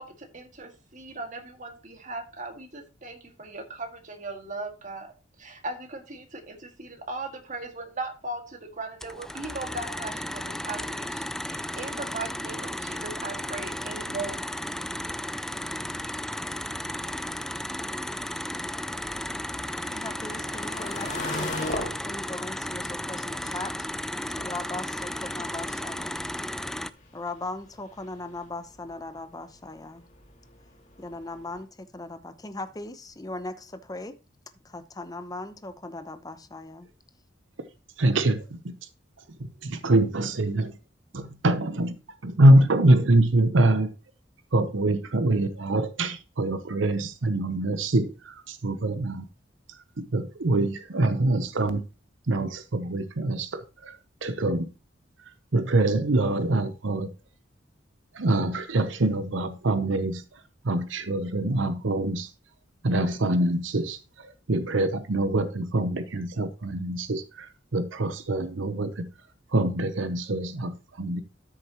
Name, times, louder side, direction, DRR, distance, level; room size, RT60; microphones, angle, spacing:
voice 1, 0.0-5.1 5.4-14.5, right 2 dB, 40° right, 2.0 m, -38 dB
sound 1, 9.0-26.9, left 1 dB, 5° left, 0.3 m, -34 dB
sound 2, 16.1-31.6, left 2 dB, 40° left, 2.2 m, -42 dB
voice 2, 19.9-23.7 24.4-26.2 27.1-30.1 31.0-34.1 34.6-36.9, left 2 dB, 20° left, 0.9 m, -38 dB
voice 3, 38.0-38.7 39.6-40.8 41.1-43.9 44.5-49.2 49.7-51.8 52.3-54.7 55.3-57.1 58.1-62.3 62.8-69.1 69.5-71.2, right 1 dB, 80° right, 0.8 m, -25 dB
13.0 x 6.6 x 3.0 m
head